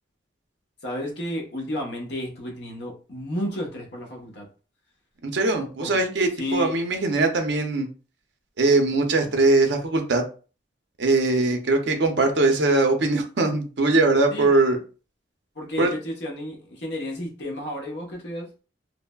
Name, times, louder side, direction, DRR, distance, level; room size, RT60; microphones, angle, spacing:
voice 1, 0.8-4.5 5.8-6.0 6.4-6.8 14.3-14.5 15.6-18.5, left 1 dB, 60° left, 0.8 m, -32 dB
voice 2, 5.2-7.9 8.6-10.2 11.0-14.8 15.8-15.9, right 2 dB, 60° right, 0.5 m, -21 dB
3.1 x 2.0 x 2.2 m
head